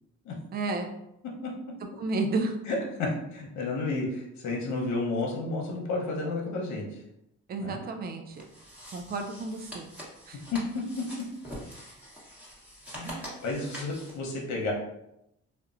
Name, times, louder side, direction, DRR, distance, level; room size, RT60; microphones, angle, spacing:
voice 1, 0.5-0.9 2.0-2.5 7.5-8.4 8.9-9.9 10.3-10.4 13.0-13.4, right 3 dB, 35° right, 5 dB, 0.4 m, -32 dB
voice 2, 2.7-7.0 7.6-7.8 10.5-10.6 12.9-14.7, left 3 dB, 70° left, -1 dB, 0.7 m, -31 dB
sound 1, 8.3-14.2, equal, 5° right, 0.9 m, -44 dB
2.9 x 2.1 x 2.4 m, 0.83 s
cardioid pair, 90°, 30 cm